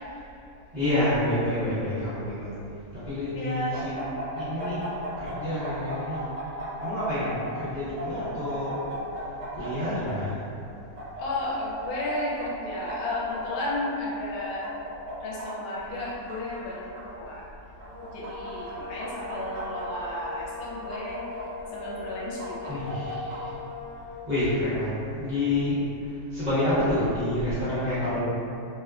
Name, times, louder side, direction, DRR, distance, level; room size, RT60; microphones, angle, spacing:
voice 1, 0.7-2.5 2.9-4.1 4.3-6.2 6.8-8.8 9.5-10.4 22.7-23.5 24.3-28.2, left 1 dB, 35° right, -15 dB, 0.8 m, -28 dB
voice 2, 3.4-3.8 11.2-14.6 15.2-17.4 18.1-21.2 21.7-22.8, left 1 dB, 80° left, -5 dB, 1.1 m, -33 dB
sound 1, 3.7-5.3 5.6-7.5 8.0-10.1 11.0-12.1 12.4-12.5 12.9-13.8 14.4-15.4 16.0-17.0 17.8-18.7 19.0-20.3 20.9-21.9 22.4-23.4, equal, 55° right, 1.1 m, -36 dB
sound 2, 17.7-24.4, left 4 dB, 75° right, 1.1 m, -41 dB
2.8 x 2.2 x 2.2 m, 2.6 s
omnidirectional pair, 1.6 m